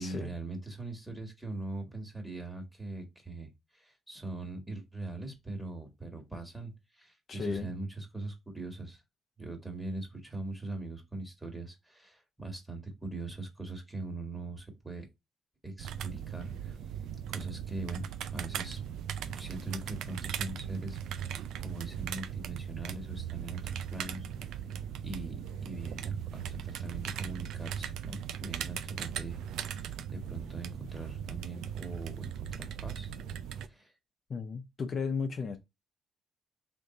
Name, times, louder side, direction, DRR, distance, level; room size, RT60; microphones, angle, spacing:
voice 1, 0.0-9.0 9.4-15.1 15.6-16.8 17.3-18.8 19.2-24.6 25.0-33.1 33.7-33.9, right 2 dB, 10° right, 1.5 m, -41 dB
voice 2, 7.3-7.7 34.3-35.6, left 5 dB, 50° left, 0.7 m, -34 dB
sound 1, 15.8-33.7, right 9 dB, 80° right, 0.3 m, -39 dB
3.6 x 2.6 x 3.8 m
cardioid pair, 90°, 0 cm